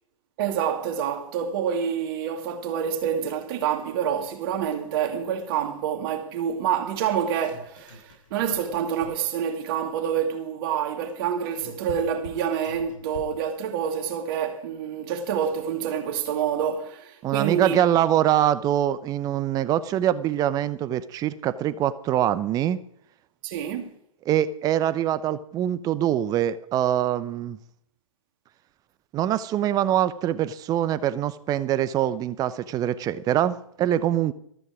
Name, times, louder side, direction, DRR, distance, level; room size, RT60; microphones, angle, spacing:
voice 1, 0.4-17.8 23.4-23.9, right 8 dB, 40° right, 2.5 m, -27 dB
sound 1, 7.0-9.4 11.1-13.6, left 4 dB, 60° left, 5.9 m, -45 dB
voice 2, 17.2-22.8 24.3-27.6 29.1-34.3, right 11 dB, 20° right, 0.8 m, -24 dB
14.0 x 14.0 x 5.0 m
figure-of-eight pair, 115°, 18 cm